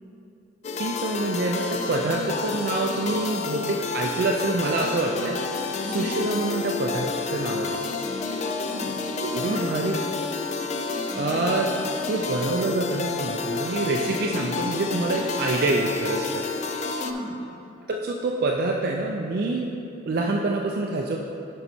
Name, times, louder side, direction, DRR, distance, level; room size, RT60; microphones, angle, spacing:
sound 1, 0.6-17.1, left 4 dB, 35° left, 0.3 m, -30 dB
voice 1, 0.8-7.7 9.2-10.0 11.1-11.7 12.1-16.4 17.9-19.7 20.1-21.2, right 2 dB, 55° right, 0 dB, 0.4 m, -26 dB
voice 2, 5.8-6.1 8.3-9.0 9.4-10.2 17.0-17.5, equal, 25° right, -4 dB, 1.1 m, -36 dB
6.8 x 5.6 x 4.3 m, 2.8 s
head